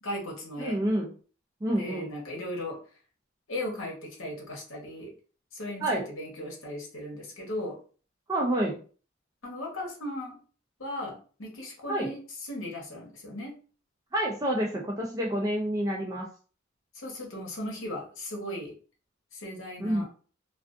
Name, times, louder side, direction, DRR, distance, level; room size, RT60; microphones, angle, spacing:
voice 1, 0.0-0.8 1.8-2.8 3.5-5.1 5.5-7.8 9.4-10.4 10.8-13.6 16.9-18.7 19.3-20.1, left 1 dB, 75° left, -1 dB, 1.0 m, -37 dB
voice 2, 0.6-1.1 1.6-2.1 5.8-6.0 8.3-8.8 11.9-12.1 14.1-16.3 19.8-20.1, right 1 dB, 20° right, -1 dB, 0.4 m, -28 dB
2.4 x 2.3 x 2.4 m, 0.39 s
head